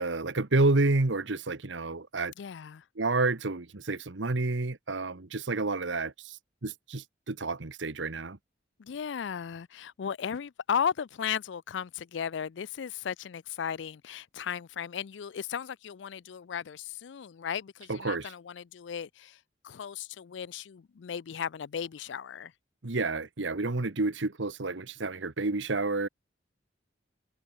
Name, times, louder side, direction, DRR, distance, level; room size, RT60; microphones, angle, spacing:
voice 1, 0.0-2.3 3.0-8.4 17.9-18.3 22.8-26.1, right 3 dB, 80° right, 1.2 m, -29 dB
voice 2, 2.4-2.8 8.8-19.3 19.6-22.5, left 7 dB, 70° left, 0.4 m, -35 dB
head